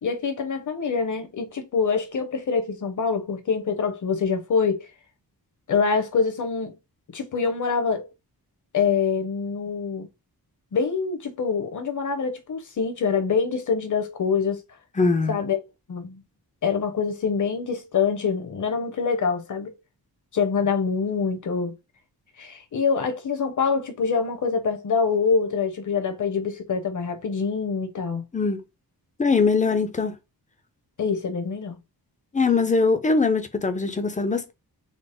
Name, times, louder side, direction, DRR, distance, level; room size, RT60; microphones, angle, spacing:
voice 1, 0.0-4.8 5.7-6.7 7.1-8.0 8.7-10.1 10.7-14.6 15.3-15.6 15.9-16.2 16.6-19.7 20.3-21.8 22.4-28.3 31.0-31.8, left 5 dB, 50° left, 0.8 m, -25 dB
voice 2, 15.0-15.4 28.3-28.6 29.2-30.1 32.3-34.5, left 4 dB, 20° left, 0.4 m, -21 dB
3.9 x 2.0 x 3.5 m
wide cardioid pair, 150°, 38 cm